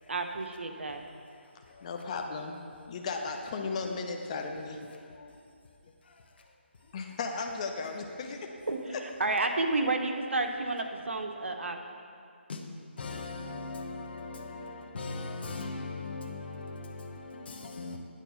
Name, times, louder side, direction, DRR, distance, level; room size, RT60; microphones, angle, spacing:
voice 1, 0.1-1.0 8.7-11.8, right 2 dB, 80° right, 0.8 m, -31 dB
voice 2, 1.7-2.6 2.9-5.3 6.9-8.5, left 4 dB, 30° left, 0.6 m, -36 dB
voice 3, 13.0-18.0, left 3 dB, 55° left, 1.0 m, -39 dB
9.1 x 4.3 x 6.7 m
hypercardioid pair, 160°, 6 cm